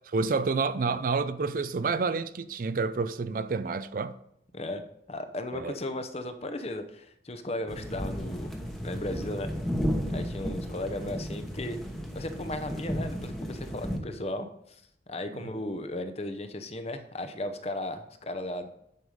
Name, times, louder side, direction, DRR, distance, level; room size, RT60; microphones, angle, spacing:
voice 1, 0.1-4.2 5.5-5.7, right 4 dB, 50° right, 0.4 m, -29 dB
voice 2, 4.5-8.5 8.8-9.5 10.1-11.8 12.1-14.8 15.1-18.7, left 1 dB, 35° left, 0.8 m, -36 dB
sound 1, 7.7-14.0, equal, ahead, 1.0 m, -33 dB
9.3 x 5.5 x 5.0 m
head